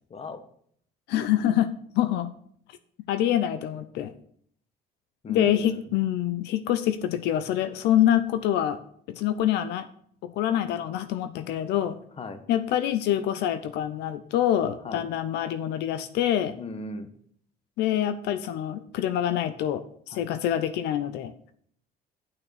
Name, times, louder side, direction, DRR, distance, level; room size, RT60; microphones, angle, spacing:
voice 1, 0.1-0.4 5.2-5.9 12.2-12.4 14.8-15.0 16.6-17.1 20.1-20.2, left 2 dB, 35° left, 9 dB, 1.3 m, -37 dB
voice 2, 1.1-1.7 2.0-2.3 3.1-4.1 5.3-8.8 9.1-9.9 10.2-12.0 12.5-16.6 17.8-21.3, left 11 dB, 85° left, 10 dB, 0.7 m, -26 dB
9.3 x 5.9 x 6.6 m, 0.62 s
cardioid pair, 110°, 17 cm